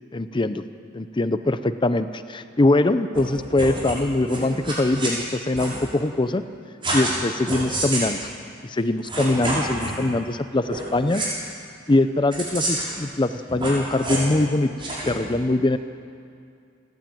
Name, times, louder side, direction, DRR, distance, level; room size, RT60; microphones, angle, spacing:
voice 1, 0.1-0.6 0.9-6.4 6.9-8.3 8.6-11.2 11.9-14.7 15.1-15.8, left 2 dB, 25° left, 11 dB, 0.6 m, -22 dB
sound 1, 3.1-3.2 3.5-4.0 4.2-5.1 5.5-5.8 6.8-7.2 7.5-8.1 8.8-8.9 9.0-10.0 10.7-10.8 11.1-11.3 12.3-12.9 13.5-14.3 14.8-15.1, right 1 dB, 25° right, 6.4 m, -28 dB
30.0 x 12.0 x 9.1 m, 2.4 s
head